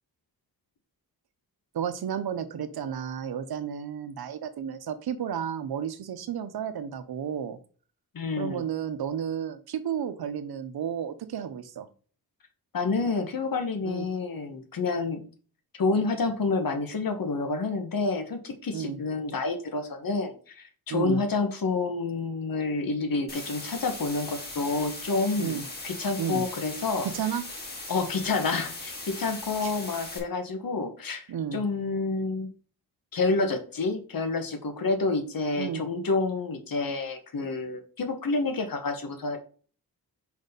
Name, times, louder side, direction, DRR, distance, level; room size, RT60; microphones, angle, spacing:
voice 1, 1.7-7.6 8.4-11.9 13.8-14.1 18.7-19.0 20.9-21.2 25.4-25.6 26.2-26.4 27.0-27.4 29.6-29.7 31.3-31.6 35.6-35.8, right 8 dB, 80° right, 11 dB, 0.8 m, -32 dB
voice 2, 8.1-8.6 12.7-15.3 15.8-27.1 27.9-31.3 31.5-32.5 33.1-39.4, left 3 dB, 65° left, 6 dB, 1.5 m, -29 dB
sound 1, 23.3-30.2, left 2 dB, 25° left, 2.4 m, -39 dB
5.2 x 4.1 x 5.2 m, 0.41 s
cardioid pair, 75°, 37 cm